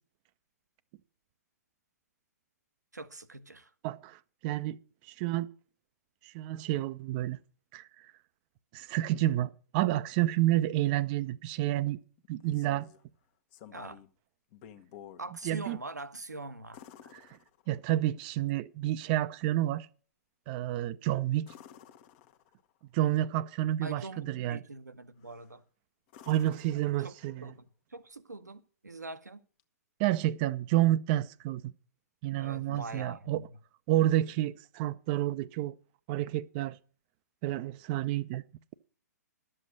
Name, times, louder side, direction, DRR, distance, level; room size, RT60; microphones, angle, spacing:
voice 1, 2.9-3.7 13.7-14.0 15.2-17.1 23.8-25.6 27.0-29.4 32.4-33.5, right 2 dB, 90° right, 1.2 m, -43 dB
voice 2, 3.8-4.8 5.1-5.5 6.3-7.4 7.7-7.8 8.7-12.0 12.3-12.9 15.5-15.8 17.7-19.9 20.5-21.5 22.9-24.6 26.3-27.5 30.0-31.7 32.2-33.4 33.9-35.7 36.1-36.8 37.4-38.4, right 14 dB, 35° right, 0.6 m, -29 dB
sound 1, 12.2-13.0 13.5-14.1 14.5-15.3 16.7-18.0 21.4-22.7 25.2-25.6 26.1-27.5 29.6-29.7, left 10 dB, 35° left, 1.0 m, -53 dB
12.0 x 7.8 x 6.5 m
figure-of-eight pair, 120°, 9 cm